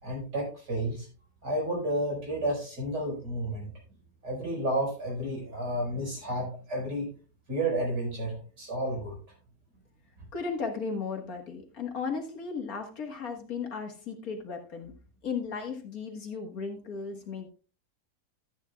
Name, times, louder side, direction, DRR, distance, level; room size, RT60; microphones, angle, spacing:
voice 1, 0.0-1.1 1.4-3.7 4.2-7.1 7.5-9.2, right 1 dB, 80° right, -1 dB, 5.5 m, -31 dB
voice 2, 10.3-14.9 15.2-17.5, left 5 dB, 60° left, 3 dB, 1.9 m, -35 dB
13.5 x 8.9 x 2.3 m, 0.38 s
omnidirectional pair, 1.8 m